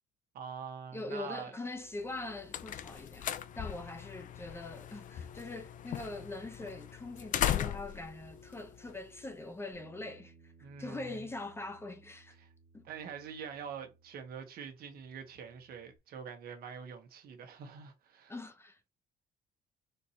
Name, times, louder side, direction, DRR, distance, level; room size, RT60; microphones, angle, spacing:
voice 1, 0.3-1.5 10.6-11.3 12.4-12.5 12.8-18.3, right 7 dB, 65° right, 1.4 m, -45 dB
voice 2, 0.9-3.3 3.6-12.4 12.7-12.9 18.3-18.9, left 2 dB, 15° left, 0.7 m, -43 dB
sound 1, 2.0-9.5, left 10 dB, 50° left, 0.5 m, -38 dB
Bass guitar, 9.7-16.0, right 4 dB, 85° right, 1.3 m, -63 dB
4.5 x 2.7 x 4.3 m
cardioid pair, 110°, 17 cm